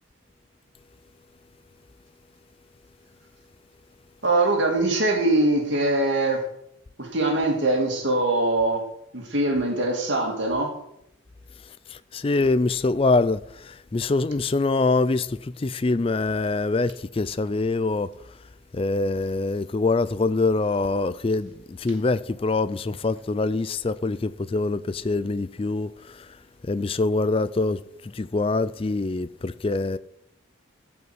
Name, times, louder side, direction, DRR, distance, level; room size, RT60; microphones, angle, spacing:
voice 1, 4.2-6.4 7.0-8.9 9.1-10.8, right 2 dB, 60° right, 2.5 m, -22 dB
voice 2, 11.9-18.1 18.7-26.3 26.7-30.0, left 3 dB, 25° left, 0.4 m, -24 dB
13.5 x 5.6 x 7.9 m
head